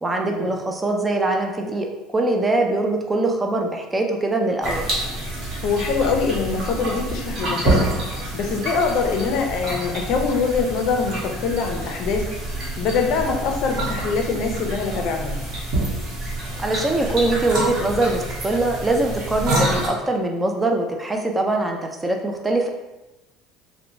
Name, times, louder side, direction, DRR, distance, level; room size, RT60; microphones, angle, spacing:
voice 1, 0.0-4.9 16.6-22.7, right 2 dB, 15° right, 2 dB, 0.3 m, -22 dB
sound 1, 4.6-19.9, right 1 dB, 50° right, 1.0 m, -27 dB
voice 2, 5.6-7.9 8.3-12.3 12.8-15.4, left 5 dB, 60° left, 3 dB, 0.4 m, -23 dB
2.8 x 2.1 x 2.6 m, 1.0 s
supercardioid pair, 110°, 0 cm